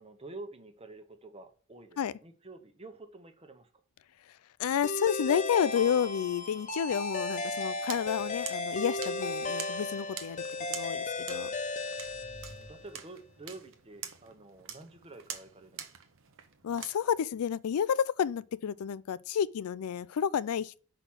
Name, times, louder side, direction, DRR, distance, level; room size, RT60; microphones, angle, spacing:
voice 1, 0.0-3.8 12.1-15.9, right 2 dB, 25° right, 1.0 m, -49 dB
voice 2, 4.6-10.4 10.7-11.5 16.6-20.8, left 8 dB, 85° left, 0.4 m, -30 dB
sound 1, 4.8-13.0, left 2 dB, 35° left, 0.7 m, -35 dB
sound 2, 7.9-16.9, right 8 dB, 65° right, 0.9 m, -46 dB
sound 3, 11.3-13.7, right 1 dB, 15° left, 1.2 m, -54 dB
5.8 x 5.0 x 6.2 m
head